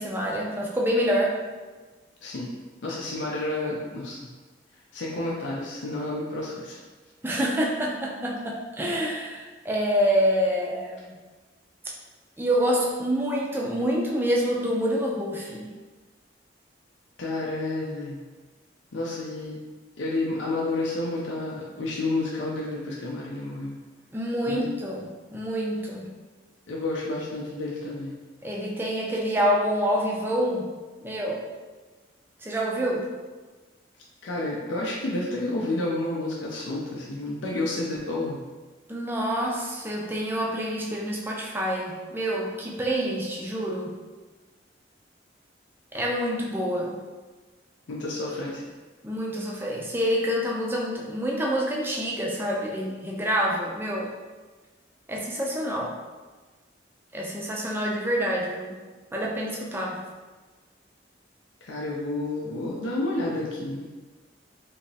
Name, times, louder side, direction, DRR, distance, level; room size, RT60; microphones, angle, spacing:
voice 1, 0.0-1.4 7.2-11.1 12.4-15.7 24.1-26.1 28.4-30.7 31.0-31.5 32.4-33.1 38.9-43.9 45.9-47.0 49.0-54.1 55.1-56.0 57.1-58.8 59.1-60.0, equal, 10° right, -2 dB, 0.4 m, -27 dB
voice 2, 2.8-4.3 4.9-6.8 17.2-18.2 18.9-19.6 20.0-23.8 24.5-24.7 26.7-28.2 34.2-38.4 47.9-48.6 61.6-63.8, left 2 dB, 80° left, -4 dB, 0.5 m, -30 dB
3.3 x 3.0 x 2.7 m, 1.3 s
head